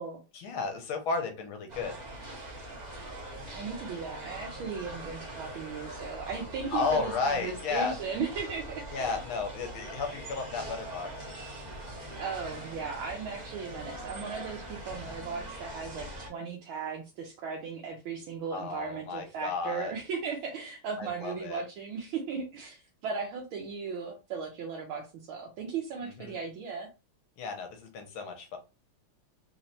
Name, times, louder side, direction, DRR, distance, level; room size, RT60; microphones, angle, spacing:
voice 1, 0.3-2.0 6.7-7.9 8.9-11.1 18.5-19.9 21.0-21.6 26.0-26.4 27.4-28.6, left 4 dB, 75° left, 4 dB, 1.7 m, -33 dB
sound 1, 1.7-16.3, right 1 dB, 30° right, 0.8 m, -42 dB
voice 2, 3.5-9.2 12.2-26.9, right 5 dB, 75° right, 1 dB, 1.5 m, -37 dB
4.0 x 3.0 x 2.8 m, 0.29 s
omnidirectional pair, 2.4 m